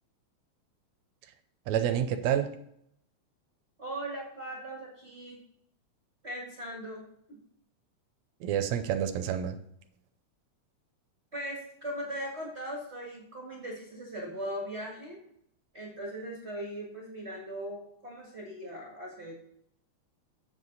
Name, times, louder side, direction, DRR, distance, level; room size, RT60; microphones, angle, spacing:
voice 1, 1.7-2.5 8.4-9.6, right 9 dB, 75° right, 8 dB, 1.8 m, -28 dB
voice 2, 3.8-5.4 6.2-7.4 11.3-15.2 15.7-19.3, equal, 30° right, -3 dB, 1.5 m, -39 dB
8.2 x 7.5 x 4.0 m, 0.72 s
omnidirectional pair, 3.6 m